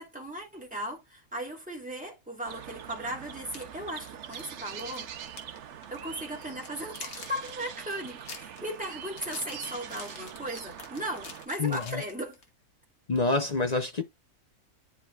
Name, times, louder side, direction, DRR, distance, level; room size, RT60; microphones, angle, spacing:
voice 1, 0.0-5.1 5.9-12.4, right 1 dB, 5° right, 2.7 m, -37 dB
sound 1, 2.4-11.5, right 9 dB, 60° right, 0.9 m, -43 dB
sound 2, 3.4-5.6 5.8-6.0 6.4-12.5, left 5 dB, 80° left, 1.9 m, -47 dB
voice 2, 11.6-12.0 13.1-14.0, left 3 dB, 50° left, 0.5 m, -27 dB
10.5 x 4.7 x 2.3 m
omnidirectional pair, 1.6 m